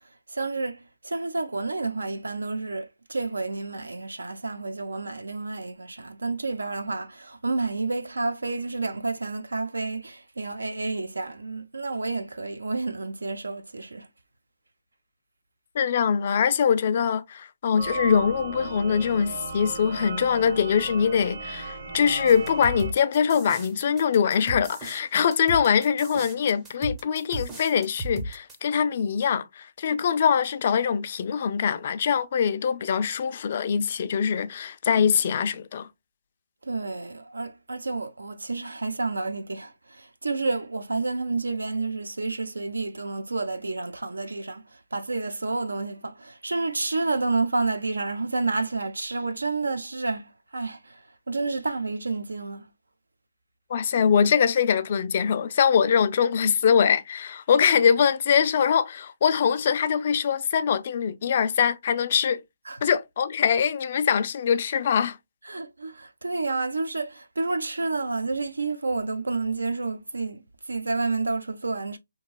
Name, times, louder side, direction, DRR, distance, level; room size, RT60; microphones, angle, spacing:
voice 1, 0.3-14.1 36.7-52.7 62.7-62.8 65.4-72.0, right 3 dB, 85° right, 0.6 m, -30 dB
voice 2, 15.8-35.9 53.7-62.4 62.8-65.2, left 7 dB, 40° left, 0.3 m, -23 dB
sound 1, 17.8-22.9, right 3 dB, 55° right, 1.0 m, -35 dB
sound 2, 22.3-28.6, right 2 dB, 10° right, 0.5 m, -36 dB
3.0 x 2.6 x 2.2 m
hypercardioid pair, 160°, 0 cm